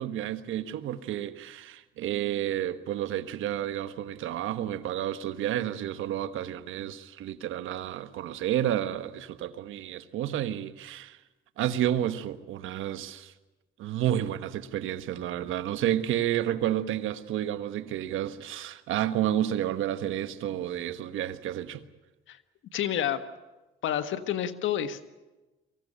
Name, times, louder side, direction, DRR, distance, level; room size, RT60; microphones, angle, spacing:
voice 1, 0.0-11.2 11.6-13.3 13.8-21.8, right 11 dB, 85° right, 1.3 m, -30 dB
voice 2, 22.7-23.2 23.8-25.1, left 10 dB, 75° left, 1.5 m, -29 dB
23.5 x 15.5 x 10.0 m
cardioid pair, 90°, 20 cm